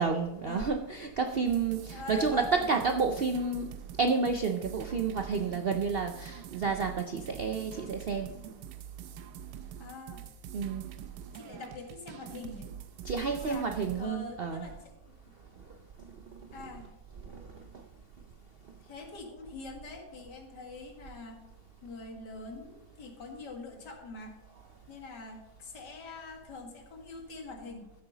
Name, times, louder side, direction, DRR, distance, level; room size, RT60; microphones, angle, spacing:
voice 1, 0.0-3.7 4.0-8.3 10.5-10.9 13.0-14.6 16.3-16.4 17.3-17.6, right 4 dB, 65° right, 5 dB, 0.5 m, -30 dB
sound 1, 1.5-14.1, right 10 dB, 90° right, 1.3 m, -45 dB
voice 2, 1.9-2.6 9.8-10.3 11.3-12.7 13.3-13.7 14.0-14.8 15.0-15.1 16.5-16.9 18.8-21.4 21.8-24.4 24.9-27.9, left 3 dB, 85° left, 3 dB, 2.4 m, -44 dB
14.0 x 7.9 x 3.9 m, 1.0 s
omnidirectional pair, 1.8 m